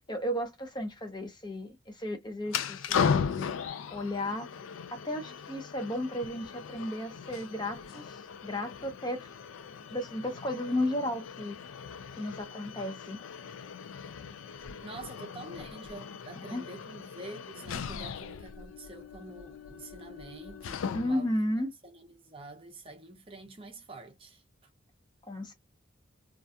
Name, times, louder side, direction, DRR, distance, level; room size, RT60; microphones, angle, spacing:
voice 1, 0.1-3.6 3.9-4.5 4.9-9.3 9.9-11.6 12.2-13.2 16.5-16.6 20.9-21.7 25.3-25.5, left 1 dB, 20° left, 0.5 m, -34 dB
sound 1, 2.5-21.4, left 6 dB, 85° left, 0.4 m, -37 dB
voice 2, 14.8-21.3 21.8-24.4, right 2 dB, 25° right, 0.6 m, -47 dB
2.4 x 2.2 x 2.6 m
head